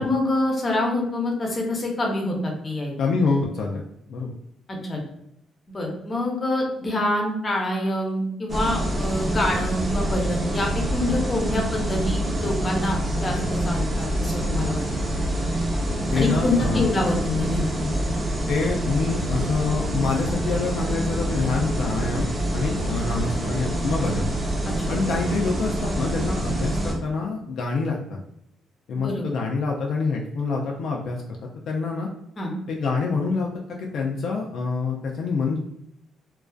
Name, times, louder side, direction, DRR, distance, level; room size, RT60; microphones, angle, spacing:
voice 1, 0.0-2.9 4.7-5.0 5.7-14.9 16.1-17.9 24.7-24.9 28.9-29.2 32.4-32.5, left 1 dB, 30° left, 0 dB, 0.7 m, -26 dB
voice 2, 3.0-3.8 4.1-4.3 16.1-16.9 18.5-24.3 24.9-28.2 28.9-31.2 31.7-32.1 32.7-35.6, left 4 dB, 70° left, 0 dB, 0.3 m, -26 dB
sound 1, 8.5-26.9, right 1 dB, 35° right, 0.7 m, -26 dB
2.4 x 2.2 x 2.3 m, 0.78 s
cardioid pair, 90°, 0 cm